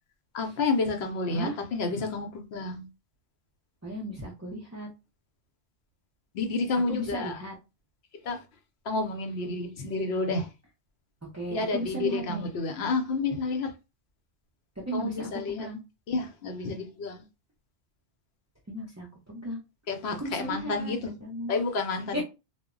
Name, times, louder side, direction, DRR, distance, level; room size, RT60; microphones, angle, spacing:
voice 1, 0.3-2.9 6.3-7.4 8.2-8.4 8.9-10.5 11.5-13.7 14.9-15.7 16.1-17.2 19.9-21.2 21.5-22.2, left 3 dB, 70° left, 0.8 m, -30 dB
voice 2, 3.8-4.9 6.9-7.6 11.3-12.5 14.8-15.8 18.7-19.6 20.2-20.9 21.2-21.5 22.1-22.2, right 1 dB, 20° right, 0.4 m, -35 dB
2.1 x 2.0 x 3.6 m
omnidirectional pair, 1.1 m